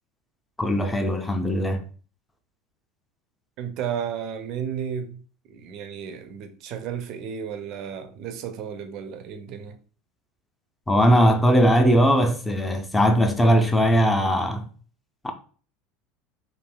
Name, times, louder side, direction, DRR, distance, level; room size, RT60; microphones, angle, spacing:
voice 1, 0.6-1.8 10.9-14.7 15.2-15.3, equal, 10° left, 0.5 m, -19 dB
voice 2, 3.6-5.2 5.5-9.8, right 8 dB, 50° right, 0.4 m, -33 dB
3.2 x 2.5 x 2.2 m
figure-of-eight pair, 75°, 0 cm